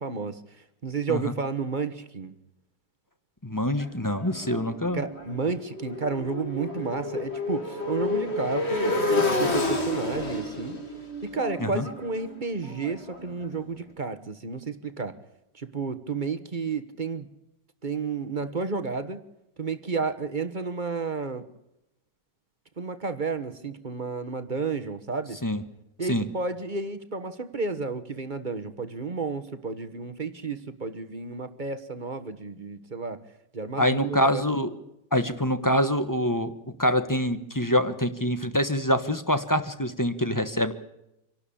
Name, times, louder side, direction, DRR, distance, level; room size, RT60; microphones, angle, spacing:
voice 1, 0.0-2.3 4.9-10.8 11.2-15.2 15.5-17.3 17.8-19.2 19.6-21.4 22.8-25.4 26.0-33.2 33.5-34.5, right 4 dB, 30° right, 10 dB, 1.3 m, -31 dB
voice 2, 3.4-5.0 11.6-11.8 25.4-25.6 26.1-26.2 33.8-34.7 35.1-36.5 36.8-40.7, equal, 10° left, 9 dB, 1.2 m, -25 dB
Motorcycle, 3.8-13.6, left 2 dB, 35° left, 3.0 m, -30 dB
26.5 x 12.0 x 8.7 m, 0.85 s
omnidirectional pair, 1.9 m